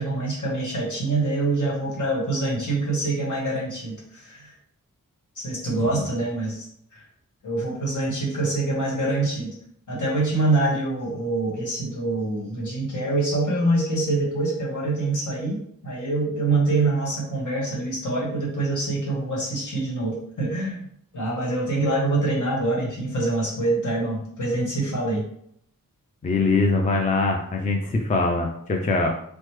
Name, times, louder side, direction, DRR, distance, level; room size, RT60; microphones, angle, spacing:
voice 1, 0.0-4.5 5.4-7.0 7.4-9.5 9.9-20.9 21.1-25.2, right 2 dB, 60° left, -4 dB, 1.2 m, -25 dB
voice 2, 26.2-29.1, left 3 dB, 25° left, 2 dB, 0.3 m, -23 dB
3.0 x 2.1 x 3.1 m, 0.69 s
wide cardioid pair, 110°, 33 cm